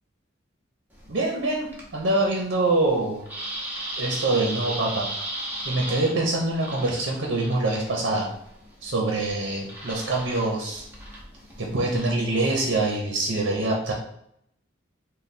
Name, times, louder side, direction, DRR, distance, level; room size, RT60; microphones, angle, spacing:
sound 1, 0.9-12.9, right 1 dB, 10° right, 0.7 m, -38 dB
voice 1, 1.1-3.2 4.0-5.1 5.7-8.3 8.8-10.8 11.6-13.9, right 2 dB, 60° right, -1 dB, 0.7 m, -25 dB
3.3 x 2.2 x 4.1 m, 0.72 s
head